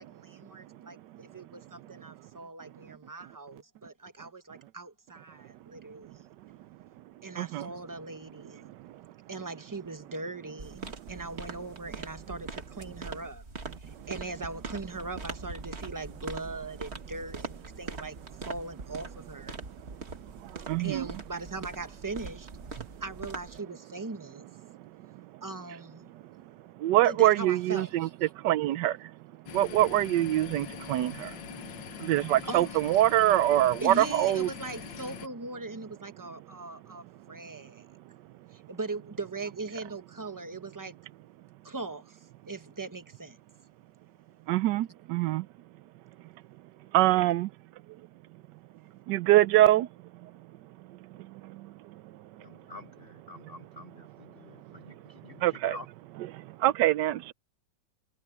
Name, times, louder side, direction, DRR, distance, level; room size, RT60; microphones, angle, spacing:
voice 1, 0.0-6.3 7.2-8.7 9.3-13.4 13.8-18.2 18.4-19.6 20.8-24.5 25.4-26.1 27.0-28.3 32.3-33.0 33.8-37.9 38.5-41.0 41.6-43.4, right 3 dB, 15° right, 0.7 m, -40 dB
voice 2, 7.4-7.7 8.8-8.9 20.1-21.1 22.8-22.9 26.8-28.1 28.3-29.1 29.5-31.7 32.0-34.5 44.5-45.5 46.9-47.5 49.1-49.9 50.2-50.3 51.2-51.7 52.0-52.1 55.4-55.8 56.2-57.3, right 14 dB, 75° right, 1.1 m, -25 dB
sound 1, 10.6-23.6, right 3 dB, 35° right, 2.1 m, -42 dB
sound 2, 29.5-35.3, left 9 dB, 80° left, 1.9 m, -43 dB
voice 3, 52.4-55.9, left 3 dB, 60° left, 0.6 m, -48 dB
omnidirectional pair, 2.0 m